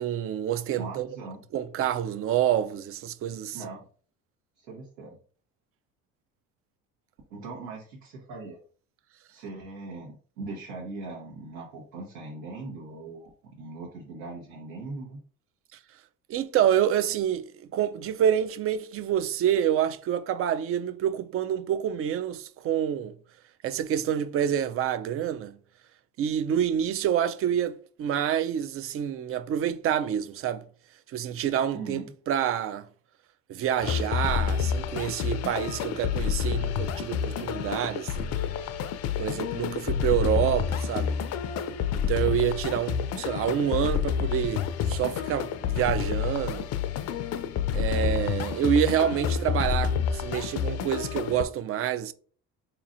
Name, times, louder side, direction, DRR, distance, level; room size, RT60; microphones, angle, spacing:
voice 1, 0.0-1.1 1.5-3.7 16.3-23.1 23.6-25.6 26.2-30.6 31.1-32.9 33.5-38.3 39.2-41.2 41.9-46.7 47.7-52.1, right 9 dB, 45° right, 0.4 m, -27 dB
voice 2, 0.8-1.4 3.5-3.8 4.6-5.2 7.3-8.6 9.3-15.2 31.7-32.1 42.2-42.4 47.9-48.1, right 3 dB, 85° right, 1.1 m, -40 dB
sound 1, 33.8-51.4, left 7 dB, 55° left, 0.5 m, -29 dB
4.0 x 2.9 x 2.5 m
supercardioid pair, 90°, 32 cm